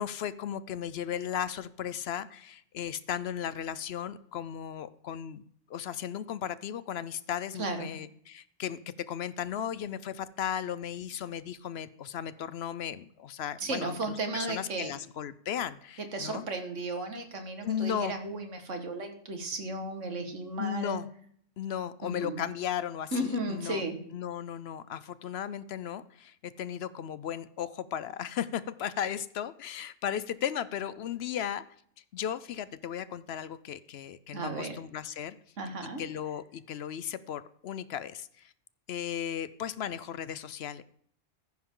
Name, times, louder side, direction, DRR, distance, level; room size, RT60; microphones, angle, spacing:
voice 1, 0.0-5.4 5.7-14.0 14.3-16.4 17.6-18.1 20.6-21.1 21.6-23.8 24.1-31.6 32.1-35.4 36.0-38.5 38.9-40.8, left 9 dB, 65° left, 16 dB, 0.8 m, -36 dB
voice 2, 7.6-7.9 13.6-14.9 16.0-21.0 22.0-22.4 23.1-24.0 34.3-34.8 35.6-36.0, right 2 dB, 90° right, 6 dB, 2.0 m, -34 dB
14.5 x 10.5 x 3.8 m, 0.64 s
omnidirectional pair, 1.2 m